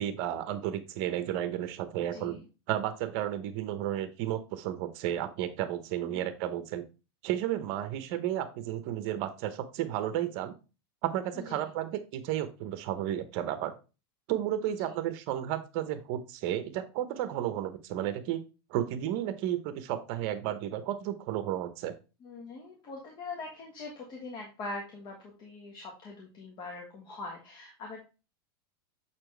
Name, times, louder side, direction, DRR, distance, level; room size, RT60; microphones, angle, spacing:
voice 1, 0.0-2.4 2.7-6.8 7.2-10.5 11.0-13.7 14.3-18.4 18.7-21.9, right 11 dB, 55° right, 10 dB, 1.0 m, -32 dB
voice 2, 2.1-2.5 6.0-6.3 11.3-11.6 14.8-15.0 22.2-28.0, left 3 dB, 35° left, 0 dB, 1.5 m, -42 dB
7.0 x 4.4 x 3.3 m, 0.30 s
supercardioid pair, 135°, 13 cm